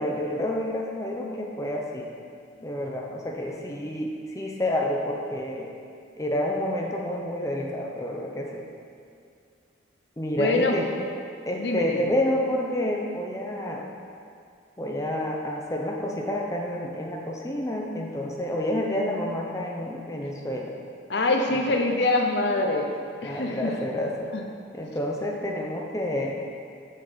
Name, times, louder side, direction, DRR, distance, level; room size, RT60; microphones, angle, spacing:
voice 1, 0.0-2.1 2.6-5.7 6.2-8.6 10.2-10.9 11.5-13.8 14.8-20.7 21.5-21.8 23.2-24.3 24.7-26.4, left 1 dB, 15° left, -1 dB, 0.8 m, -29 dB
voice 2, 10.4-10.8 11.6-12.0 21.1-22.9 23.2-23.7, left 2 dB, 60° left, 2 dB, 0.8 m, -24 dB
7.6 x 5.9 x 6.9 m, 2.4 s
head